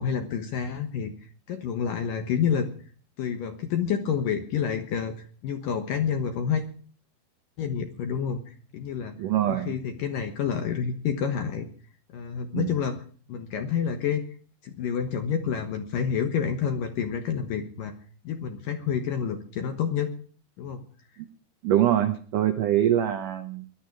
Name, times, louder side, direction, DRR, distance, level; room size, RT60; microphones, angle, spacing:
voice 1, 0.0-2.7 3.2-5.1 5.4-6.6 7.6-9.2 9.5-11.7 12.1-13.0 13.3-14.2 14.6-17.9 18.2-20.1 20.6-20.8, left 7 dB, 65° left, 7 dB, 2.3 m, -28 dB
voice 2, 9.2-9.7 12.5-12.8 21.2-21.3 21.6-23.6, right 11 dB, 85° right, 8 dB, 1.8 m, -24 dB
19.5 x 12.5 x 4.7 m, 0.43 s
omnidirectional pair, 5.3 m